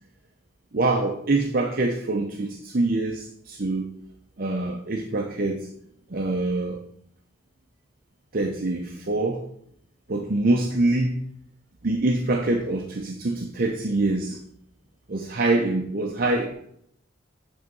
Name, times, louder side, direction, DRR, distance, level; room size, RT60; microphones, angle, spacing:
voice 1, 0.7-3.9 4.4-5.7 6.1-6.8 8.3-9.4 10.1-11.2 11.8-14.4 15.1-16.5, right 2 dB, 45° right, 2 dB, 0.7 m, -25 dB
8.3 x 3.6 x 5.3 m, 0.69 s
head